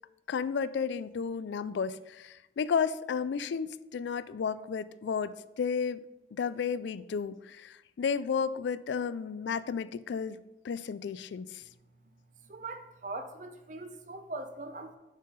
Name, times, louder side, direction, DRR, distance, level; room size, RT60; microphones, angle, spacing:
voice 1, 0.3-6.0 6.4-10.4 10.6-11.6, left 6 dB, 80° left, 16 dB, 0.3 m, -32 dB
voice 2, 12.4-15.0, right 2 dB, 45° right, 7 dB, 0.6 m, -41 dB
7.2 x 5.7 x 4.0 m, 0.97 s
head